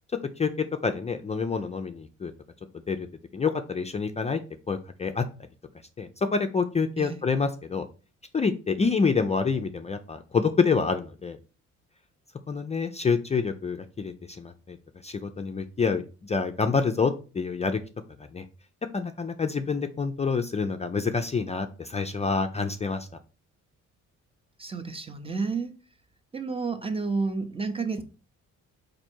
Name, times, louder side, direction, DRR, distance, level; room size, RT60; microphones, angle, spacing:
voice 1, 0.4-2.3 2.9-3.1 3.3-4.4 4.7-5.3 6.0-7.9 8.3-11.4 12.5-14.8 15.0-17.8 18.2-18.4 18.9-23.1, left 5 dB, 20° left, 0.4 m, -27 dB
voice 2, 24.6-25.7 26.3-28.0, right 4 dB, 20° right, 0.7 m, -30 dB
4.3 x 2.6 x 4.4 m
cardioid pair, 90°, 30 cm